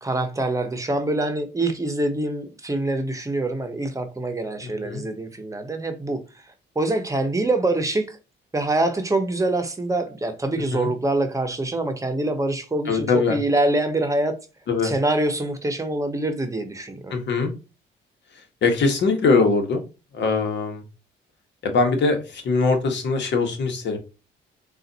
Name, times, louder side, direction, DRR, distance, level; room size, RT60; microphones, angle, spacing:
voice 1, 0.0-6.2 6.7-8.2 8.5-14.4 14.8-17.1, right 2 dB, 15° right, 0.9 m, -25 dB
voice 2, 12.9-13.4 14.7-14.9 17.1-17.5 18.6-19.8 20.1-20.8 21.6-24.0, left 4 dB, 65° left, 1.3 m, -21 dB
3.9 x 2.5 x 4.0 m
cardioid pair, 90°, 20 cm